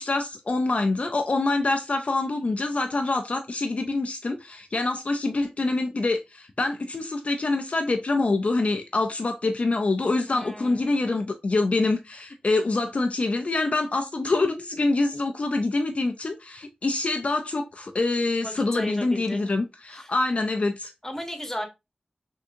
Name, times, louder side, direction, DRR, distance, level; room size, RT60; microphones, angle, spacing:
voice 1, 0.0-20.9, left 2 dB, 55° left, 0.3 m, -25 dB
voice 2, 10.3-11.1 18.4-19.5 19.9-20.1 21.0-21.7, left 1 dB, 15° left, 0.9 m, -35 dB
3.5 x 2.6 x 2.5 m
cardioid pair, 50°, 3 cm